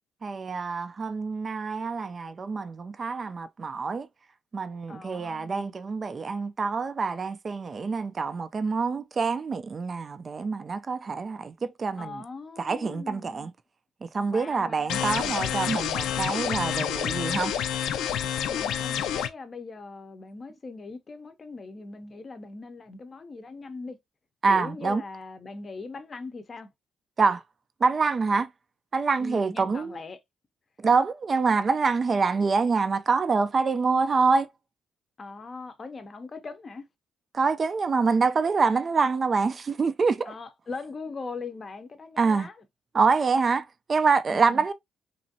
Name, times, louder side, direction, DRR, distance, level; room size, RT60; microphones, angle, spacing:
voice 1, 0.2-4.1 4.5-12.2 12.6-13.5 14.0-17.5 24.4-25.0 27.2-27.4 27.8-28.5 28.9-30.0 30.8-34.5 37.3-40.3 42.2-42.5 42.9-44.7, right 4 dB, 40° right, 0.3 m, -26 dB
voice 2, 4.9-5.8 12.0-13.5 14.3-15.4 18.5-24.0 24.5-26.7 29.2-30.2 35.2-36.8 40.3-42.6 44.3-44.6, left 3 dB, 35° left, 0.6 m, -40 dB
sound 1, 14.9-19.3, left 9 dB, 85° left, 0.4 m, -28 dB
3.0 x 2.5 x 2.7 m
cardioid pair, 90°, 0 cm